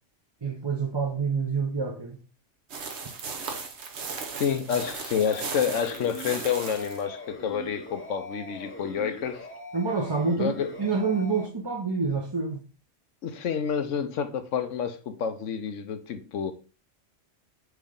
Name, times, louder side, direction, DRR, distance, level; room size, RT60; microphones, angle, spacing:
voice 1, 0.4-2.2 9.7-10.5 10.8-12.6, right 4 dB, 25° right, 0.7 m, -27 dB
sound 1, 2.7-7.0, right 5 dB, 65° right, 1.2 m, -37 dB
voice 2, 4.4-9.5 10.4-10.7 13.2-16.5, left 7 dB, 80° left, 1.1 m, -29 dB
sound 2, 5.1-11.5, left 1 dB, 10° left, 0.7 m, -42 dB
7.9 x 3.2 x 3.8 m
omnidirectional pair, 1.3 m